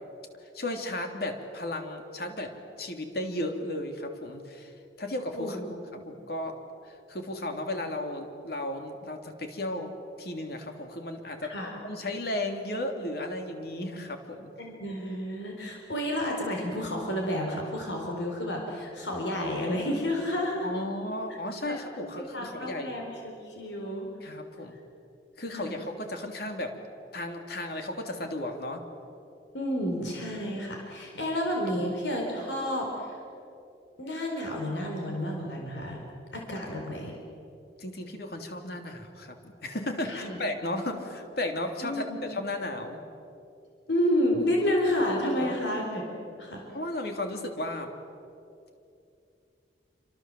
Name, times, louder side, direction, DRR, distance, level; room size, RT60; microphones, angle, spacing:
voice 1, 0.4-5.6 6.0-6.6 6.8-9.9 10.2-11.5 11.8-14.5 20.6-23.0 24.2-24.8 25.4-26.7 27.1-28.9 31.1-31.2 37.8-43.0 45.4-45.6 46.7-47.9, left 1 dB, 60° left, 4 dB, 3.2 m, -34 dB
voice 2, 5.4-5.8 11.5-11.7 14.6-20.7 21.7-21.8 22.2-24.1 25.5-25.7 29.5-33.2 34.0-36.0 36.3-37.2 40.1-40.4 41.8-42.2 43.9-46.0 46.4-46.6, left 1 dB, 85° left, 0 dB, 4.3 m, -30 dB
28.0 x 25.5 x 7.8 m, 2.6 s
head